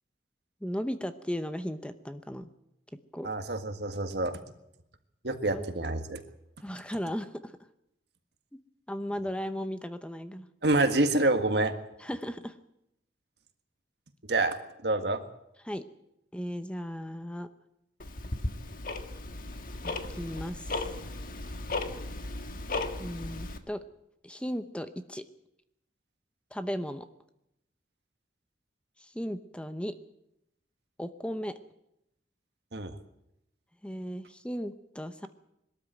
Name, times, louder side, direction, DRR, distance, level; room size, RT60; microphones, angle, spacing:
voice 1, 0.6-2.5 3.1-3.3 5.5-5.6 6.6-7.5 8.9-10.5 12.0-12.5 15.6-15.8 16.3-17.5 19.8-20.7 23.0-23.8 24.2-25.2 26.5-27.1 29.0-29.9 31.0-31.6 33.8-35.3, equal, 5° left, 10 dB, 0.8 m, -36 dB
voice 2, 3.2-4.4 5.2-6.2 10.6-11.7 14.3-14.6 14.8-15.2 32.7-33.0, right 2 dB, 70° right, 7 dB, 1.8 m, -27 dB
Tick-tock, 18.0-23.6, left 2 dB, 50° left, 1.5 m, -36 dB
21.5 x 13.0 x 9.2 m, 0.83 s
head